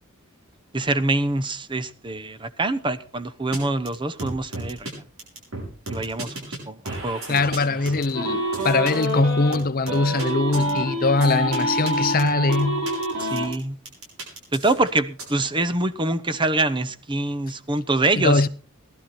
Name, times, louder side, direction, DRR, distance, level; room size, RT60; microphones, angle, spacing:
voice 1, 0.7-4.9 5.9-7.4 13.2-13.8 14.5-18.5, right 2 dB, 20° right, 0.9 m, -25 dB
sound 1, 3.5-3.6 3.9-4.0 4.2-4.9 5.2-6.6 6.9-9.0 9.5-10.2 10.5-10.7 11.2-11.6 11.9-12.0 12.2-13.5 13.9-15.2, right 2 dB, 70° right, 7.5 m, -35 dB
voice 2, 7.3-12.9 18.2-18.5, left 3 dB, 45° left, 0.7 m, -22 dB
sound 2, 8.1-9.5 9.9-13.5, right 1 dB, 90° right, 6.8 m, -26 dB
18.5 x 12.0 x 4.3 m
head